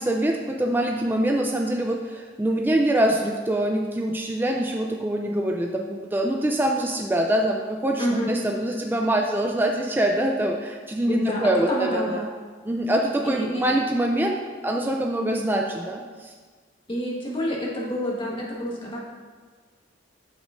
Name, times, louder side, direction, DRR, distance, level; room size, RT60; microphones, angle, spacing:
voice 1, 0.0-12.2 12.6-14.4 14.6-16.3, right 1 dB, 10° right, 1 dB, 0.4 m, -24 dB
voice 2, 8.0-8.3 11.1-12.2 13.2-13.7 16.9-19.0, equal, 30° left, -4 dB, 1.5 m, -28 dB
7.8 x 7.2 x 2.6 m, 1.5 s
head